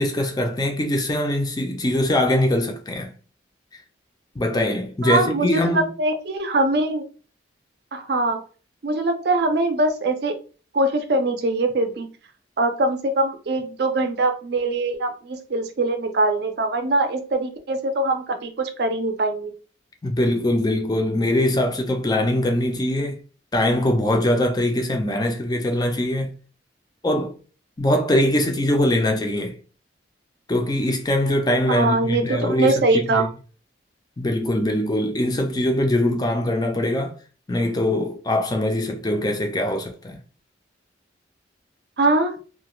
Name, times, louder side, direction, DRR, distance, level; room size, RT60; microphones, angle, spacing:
voice 1, 0.0-3.1 4.4-5.9 20.0-23.2 23.5-26.3 27.0-27.4 27.8-29.6 30.5-33.3 34.2-37.2 37.5-40.2, left 1 dB, 20° left, 0.4 m, -22 dB
voice 2, 5.0-7.1 7.9-8.4 8.8-10.4 10.7-12.1 12.6-19.5 31.7-33.3 42.0-42.4, right 2 dB, 55° right, 0.5 m, -22 dB
2.4 x 2.2 x 3.0 m
head